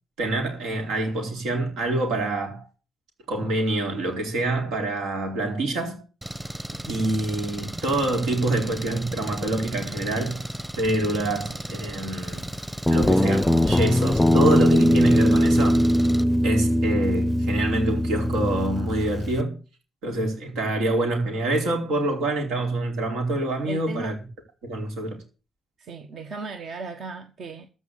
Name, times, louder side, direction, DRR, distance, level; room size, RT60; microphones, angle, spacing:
voice 1, 0.2-2.6 3.3-6.0 6.9-10.4 10.8-12.5 12.9-15.9 16.4-19.5 20.0-24.2 24.6-25.2, right 2 dB, 85° right, 4.3 m, -26 dB
Engine, 6.2-16.2, right 1 dB, 15° right, 1.1 m, -35 dB
Guitar, 12.9-19.4, equal, 10° left, 0.5 m, -20 dB
voice 2, 23.7-24.2 25.8-27.7, right 4 dB, 60° right, 1.4 m, -36 dB
14.0 x 5.4 x 8.3 m
cardioid pair, 90°, 0 cm